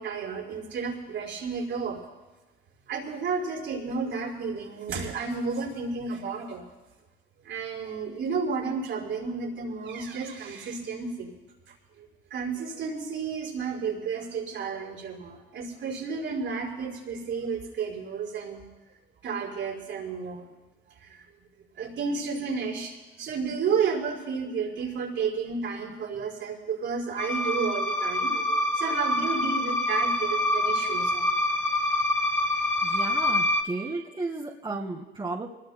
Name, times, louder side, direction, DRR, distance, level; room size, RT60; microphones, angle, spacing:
voice 1, 0.0-2.0 2.9-6.7 7.4-11.3 12.0-18.6 19.2-20.5 21.0-21.2 21.8-31.2, right 5 dB, 75° right, -2 dB, 5.3 m, -32 dB
sound 1, 27.2-33.6, left 1 dB, 15° left, 2.0 m, -26 dB
voice 2, 32.8-35.5, right 3 dB, 25° right, -1 dB, 2.0 m, -34 dB
26.5 x 20.5 x 2.2 m, 1.2 s
cardioid pair, 90°, 20 cm